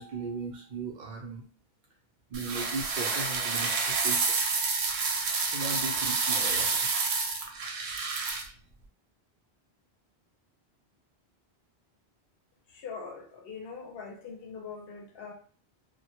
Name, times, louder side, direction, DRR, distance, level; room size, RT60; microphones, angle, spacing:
voice 1, 0.0-1.4 2.3-4.2 5.4-6.8, right 4 dB, 55° right, -1 dB, 0.6 m, -37 dB
sound 1, 2.3-8.4, right 4 dB, 85° right, 0.8 m, -29 dB
voice 2, 12.7-15.3, left 5 dB, 70° left, 1 dB, 0.8 m, -42 dB
2.1 x 2.1 x 2.8 m, 0.42 s
omnidirectional pair, 1.1 m